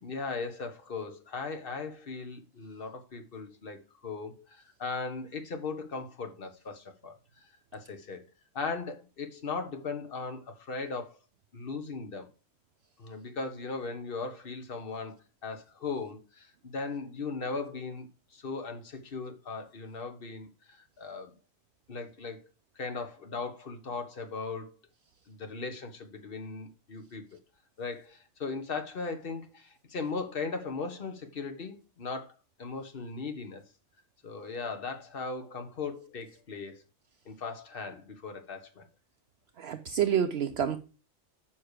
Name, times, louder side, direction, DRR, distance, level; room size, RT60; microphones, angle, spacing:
voice 1, 0.0-7.1 7.4-8.2 8.5-11.2 11.5-12.3 13.0-21.4 21.9-22.4 22.7-24.7 25.3-27.2 27.8-32.3 32.6-33.6 34.2-36.8 37.2-38.9, left 4 dB, 50° left, 1.4 m, -38 dB
voice 2, 39.6-40.8, right 9 dB, 65° right, 0.8 m, -28 dB
7.3 x 5.6 x 4.9 m
omnidirectional pair, 1.3 m